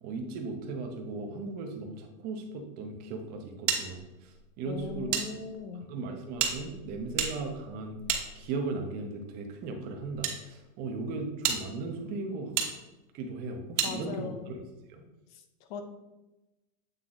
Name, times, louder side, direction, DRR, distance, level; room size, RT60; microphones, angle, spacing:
voice 1, 0.0-5.1 5.9-8.0 8.3-12.6 13.1-14.6 14.9-15.0, right 3 dB, 20° right, 3 dB, 0.6 m, -37 dB
sound 1, 3.7-5.3 5.5-5.6 6.3-8.8 9.6-10.4 10.9-11.0 11.4-11.6 12.6-12.7 13.8-13.9, right 8 dB, 55° right, 1.2 m, -32 dB
voice 2, 4.7-5.9 13.8-14.5 15.7-15.8, left 6 dB, 35° left, 8 dB, 0.6 m, -39 dB
7.9 x 3.6 x 3.9 m, 1.0 s
supercardioid pair, 160°, 44 cm